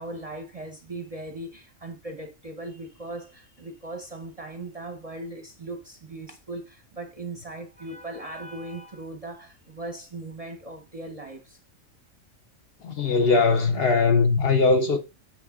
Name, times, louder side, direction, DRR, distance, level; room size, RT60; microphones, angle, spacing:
voice 1, 0.0-11.6, right 2 dB, 35° right, 0.7 m, -38 dB
voice 2, 12.8-15.0, left 4 dB, 55° left, 0.8 m, -20 dB
8.4 x 3.3 x 3.5 m
omnidirectional pair, 1.4 m